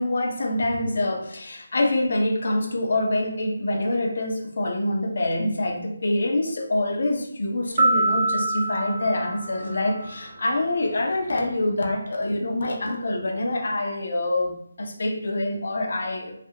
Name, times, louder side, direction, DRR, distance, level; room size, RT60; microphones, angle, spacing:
voice 1, 0.0-16.4, left 1 dB, 60° left, 3 dB, 0.5 m, -25 dB
sound 1, 7.8-10.3, right 2 dB, 55° right, 0.7 m, -25 dB
2.4 x 2.0 x 2.8 m, 0.74 s
figure-of-eight pair, 165°, 0 cm